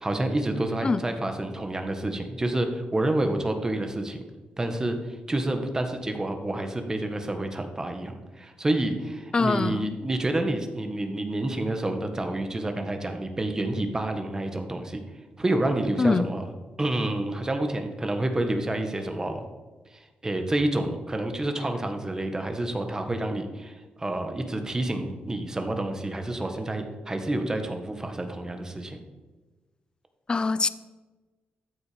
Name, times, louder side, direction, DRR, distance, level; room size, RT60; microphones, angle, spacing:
voice 1, 0.0-4.2 4.6-15.0 15.4-16.5 16.8-19.4 20.2-29.0, right 1 dB, 20° right, 6 dB, 1.6 m, -28 dB
voice 2, 9.3-9.9 16.0-16.3 30.3-30.7, left 4 dB, 30° left, 15 dB, 0.5 m, -23 dB
13.5 x 8.2 x 5.2 m, 1.2 s
cardioid pair, 105°, 3 cm